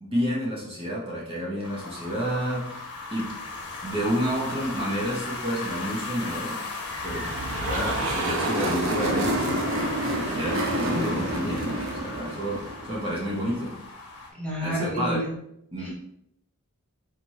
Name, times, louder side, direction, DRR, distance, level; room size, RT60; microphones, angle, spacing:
voice 1, 0.0-2.8 3.1-3.4 3.8-6.6 7.0-7.3 7.6-13.8 14.6-15.2 15.7-15.9, equal, 25° right, -5 dB, 1.0 m, -30 dB
sound 1, 1.6-14.3, left 3 dB, 85° left, 1.1 m, -36 dB
sound 2, 6.9-13.3, right 1 dB, 60° right, 0.7 m, -29 dB
voice 2, 14.3-15.3 15.8-15.9, equal, 5° left, -5 dB, 1.0 m, -30 dB
4.7 x 2.6 x 4.1 m, 0.74 s
head